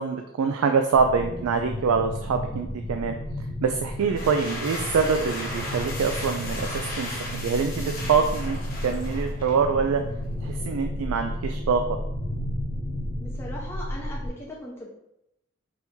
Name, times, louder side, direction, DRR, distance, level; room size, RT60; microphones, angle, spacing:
voice 1, 0.0-3.2 3.6-10.0 10.4-12.0, right 5 dB, 85° right, 5 dB, 0.3 m, -25 dB
sound 1, 0.9-14.3, equal, 65° left, 1.2 m, -33 dB
sound 2, 4.0-9.7, left 2 dB, 40° left, 1.0 m, -36 dB
voice 2, 13.2-14.9, left 1 dB, 10° left, -4 dB, 0.5 m, -39 dB
4.3 x 2.7 x 3.5 m, 0.82 s
head